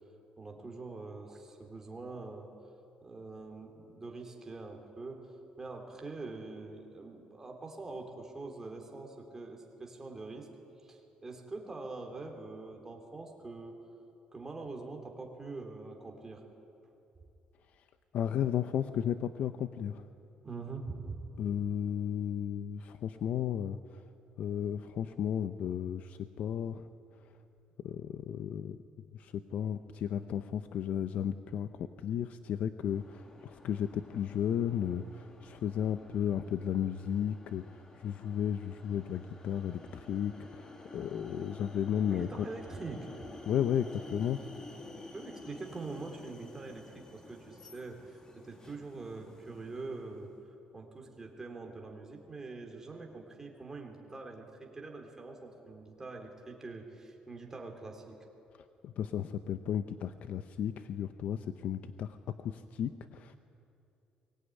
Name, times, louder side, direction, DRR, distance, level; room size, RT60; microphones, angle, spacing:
voice 1, 0.4-2.5 3.0-5.3 5.6-10.5 10.8-13.8 14.3-16.4 20.4-21.2 42.1-43.1 45.1-50.3 50.7-58.2, right 3 dB, 15° right, 2 dB, 3.5 m, -44 dB
voice 2, 18.1-20.1 21.4-24.0 24.4-26.9 27.8-28.8 29.1-42.5 43.5-44.4 58.8-63.4, left 9 dB, 60° left, 10 dB, 0.8 m, -34 dB
sound 1, 32.8-50.3, left 2 dB, 25° left, 2.2 m, -51 dB
23.0 x 19.5 x 9.9 m, 2.7 s
cardioid pair, 145°, 3 cm